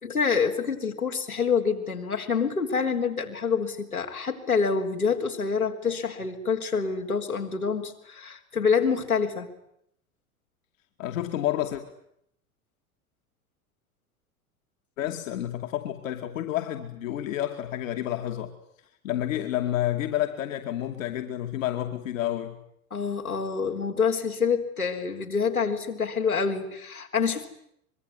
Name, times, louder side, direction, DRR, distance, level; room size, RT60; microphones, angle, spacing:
voice 1, 0.0-9.5 22.9-27.5, left 5 dB, 90° left, 4.0 m, -27 dB
voice 2, 11.0-11.8 15.0-18.5 19.0-22.6, left 12 dB, 65° left, 2.6 m, -29 dB
25.0 x 23.0 x 9.7 m
figure-of-eight pair, 80°, 42 cm